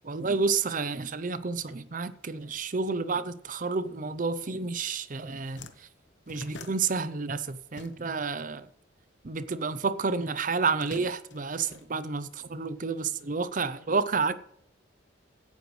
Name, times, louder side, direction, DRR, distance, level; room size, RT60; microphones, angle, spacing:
voice 1, 0.0-5.7 6.3-8.7 9.2-14.3, right 4 dB, 45° right, 0.6 m, -30 dB
sound 1, 4.8-5.0 5.2-8.4 8.6-9.8 10.5-12.5, left 3 dB, 65° left, 1.1 m, -48 dB
16.0 x 11.5 x 3.2 m
head